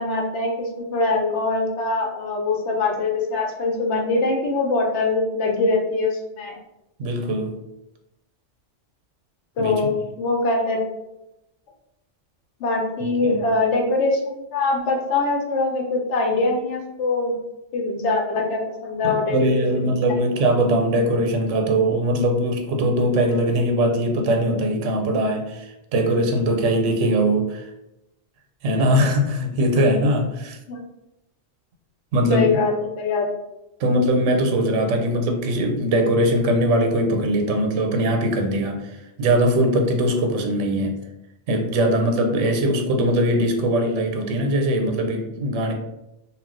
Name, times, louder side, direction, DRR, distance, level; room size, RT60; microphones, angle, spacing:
voice 1, 0.0-6.6 9.6-10.8 12.6-17.4 17.7-20.0 30.7-30.8 32.3-33.3, left 3 dB, 70° left, 1 dB, 0.9 m, -23 dB
voice 2, 7.0-7.5 9.6-9.8 13.0-13.4 19.0-27.6 28.6-30.6 32.1-32.5 33.8-38.8 39.2-41.0 41.5-45.7, right 1 dB, 85° right, 3 dB, 0.9 m, -21 dB
2.3 x 2.2 x 3.6 m, 0.90 s
omnidirectional pair, 1.2 m